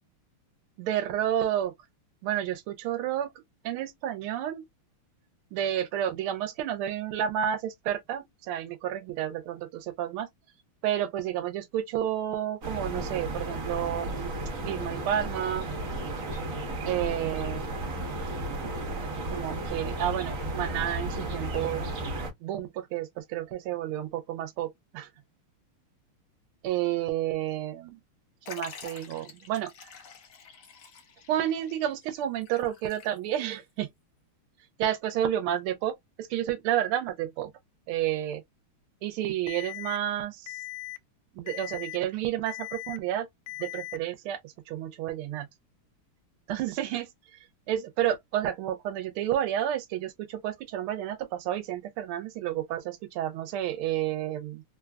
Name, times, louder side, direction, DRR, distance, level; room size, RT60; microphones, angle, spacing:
voice 1, 0.8-1.7 2.2-3.3 3.6-4.6 5.5-10.3 10.8-14.3 14.6-15.7 16.8-17.7 19.3-21.9 22.4-25.1 26.6-28.0 28.5-29.9 31.3-33.9 34.8-37.5 37.9-38.4 39.0-40.6 41.3-43.3 43.6-45.5 46.5-47.1 47.7-54.6, right 11 dB, 80° right, 1.4 m, -30 dB
sound 1, 12.6-22.3, right 1 dB, 50° right, 1.1 m, -34 dB
Liquid, 28.4-33.5 33.8-33.9 34.9-35.0, left 6 dB, 60° left, 0.9 m, -47 dB
Alarm, 39.5-40.0 40.5-41.0 41.5-42.0 42.5-43.0 43.5-44.0, left 18 dB, 75° left, 1.3 m, -39 dB
3.7 x 2.2 x 2.2 m
omnidirectional pair, 2.4 m